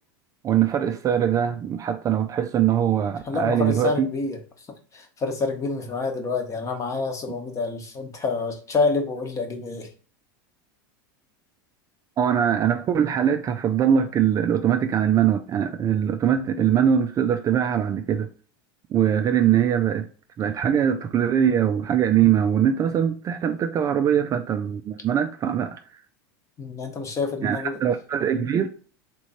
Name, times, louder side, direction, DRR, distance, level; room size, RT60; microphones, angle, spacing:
voice 1, 0.4-4.1 12.2-18.3 18.9-20.1 20.4-25.8 27.4-28.7, right 9 dB, 30° right, 0.4 m, -22 dB
voice 2, 3.2-4.7 4.9-9.9 26.6-27.8, left 4 dB, 25° left, 1.0 m, -28 dB
3.7 x 3.1 x 4.1 m
supercardioid pair, 115°, 12 cm